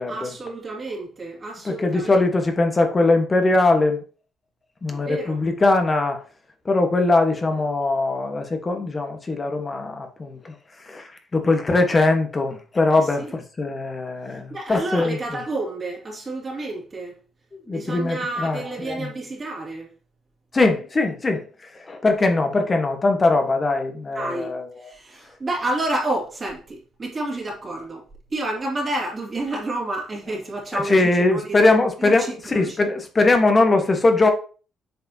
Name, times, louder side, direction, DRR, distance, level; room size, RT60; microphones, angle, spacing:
voice 1, 0.1-2.2 4.9-5.4 12.9-13.3 14.5-17.2 17.7-19.9 24.1-24.5 24.8-28.0 28.3-31.7 32.0-32.8, right 2 dB, 35° right, 2.6 m, -30 dB
voice 2, 1.6-4.0 4.8-6.2 6.6-10.5 10.8-15.4 17.7-19.1 20.5-21.4 21.8-24.9 30.7-34.3, left 2 dB, 30° left, 1.3 m, -21 dB
7.8 x 4.8 x 2.8 m
cardioid pair, 90°, 0 cm